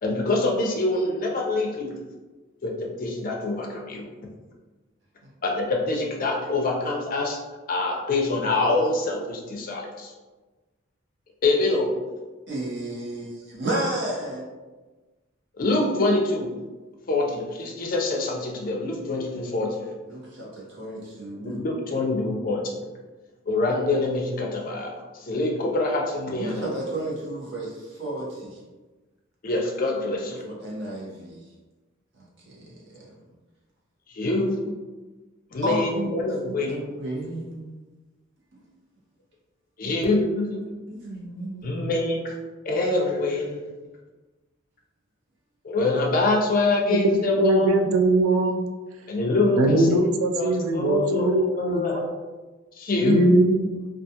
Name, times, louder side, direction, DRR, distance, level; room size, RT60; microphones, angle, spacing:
voice 1, 0.0-1.9 2.6-4.1 5.4-7.4 7.7-10.1 11.4-11.9 15.6-16.5 17.1-19.8 21.4-22.8 23.5-24.9 25.2-26.7 29.4-30.5 34.1-34.7 35.5-36.8 39.8-40.8 41.6-42.4 42.6-43.6 45.6-47.8 49.1-52.0 52.8-53.2, left 2 dB, 45° left, 0 dB, 0.4 m, -25 dB
voice 2, 12.5-14.4 20.1-21.6 26.4-28.6 30.4-31.4 32.5-33.1 35.6-36.1 36.4-37.6 39.8-39.9 40.9-41.9 48.9-49.2, right 1 dB, 60° right, -5 dB, 0.8 m, -32 dB
voice 3, 47.0-48.6 49.5-52.1 53.0-53.9, right 2 dB, 90° right, 6 dB, 0.3 m, -21 dB
2.4 x 2.3 x 2.7 m, 1.2 s
head